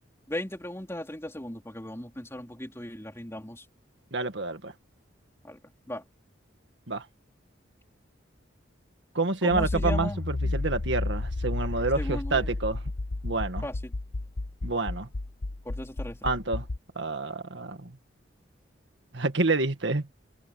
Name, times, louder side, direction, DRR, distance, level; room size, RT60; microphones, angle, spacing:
voice 1, 0.3-3.7 5.4-5.6 5.9-6.0 9.4-10.2 12.0-12.5 13.6-13.9 15.6-16.3, left 1 dB, 15° left, 4.1 m, -37 dB
voice 2, 4.1-4.7 6.9-7.1 9.2-12.8 13.2-13.7 14.6-15.1 16.2-16.7 17.0-17.9 19.1-20.1, right 3 dB, 65° right, 1.9 m, -28 dB
Accelerating revving vroom, 9.5-16.8, left 2 dB, 55° left, 0.9 m, -32 dB
head